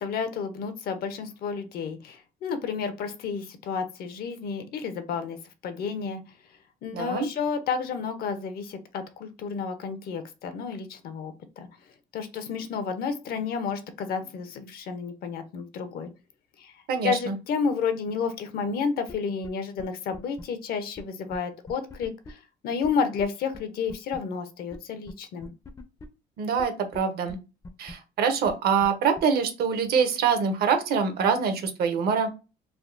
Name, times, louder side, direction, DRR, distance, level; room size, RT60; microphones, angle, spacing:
voice 1, 0.0-5.4 5.6-6.2 6.8-11.7 12.1-16.1 16.6-16.7 17.0-25.5, left 5 dB, 65° left, 10 dB, 0.6 m, -31 dB
voice 2, 6.9-7.3 16.9-17.3 26.4-27.4 27.8-32.3, right 6 dB, 65° right, 7 dB, 0.7 m, -25 dB
sound 1, 19.1-19.2 19.4-19.5 19.8-19.9 20.1-20.4 21.0-21.1 21.3-21.4 21.7-22.3 22.8-22.9 23.2-23.3 23.5-23.6 23.9-24.2 24.7-24.8 25.1-25.2 25.4-26.1 26.6-26.7 26.9-27.0 27.3-27.4 27.6-27.9 28.5-28.6 28.8-28.9 29.2-29.3, left 3 dB, 20° left, 0.4 m, -41 dB
3.4 x 2.2 x 2.4 m, 0.30 s
cardioid pair, 110°, 17 cm